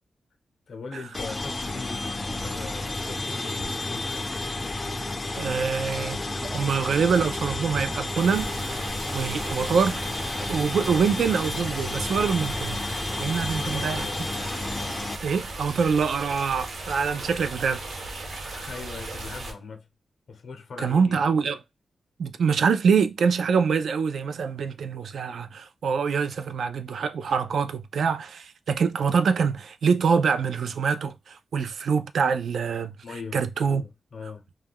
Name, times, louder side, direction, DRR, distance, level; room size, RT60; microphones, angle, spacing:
voice 1, 0.7-4.3 13.3-14.4 18.4-19.9 20.3-21.2 33.0-34.5, left 4 dB, 70° left, 0.7 m, -40 dB
sound 1, 1.1-15.2, left 2 dB, 25° left, 0.4 m, -31 dB
voice 2, 5.4-6.2 6.5-8.5 9.1-10.0 10.5-12.8 13.2-14.1 15.2-17.8 20.8-21.6 22.2-33.0 33.3-33.8, right 6 dB, 85° right, 0.3 m, -25 dB
sound 2, 5.5-9.1, right 2 dB, 35° right, 0.6 m, -41 dB
sound 3, 8.1-19.5, right 2 dB, 70° right, 0.8 m, -36 dB
2.2 x 2.2 x 3.4 m
wide cardioid pair, 140°, 0 cm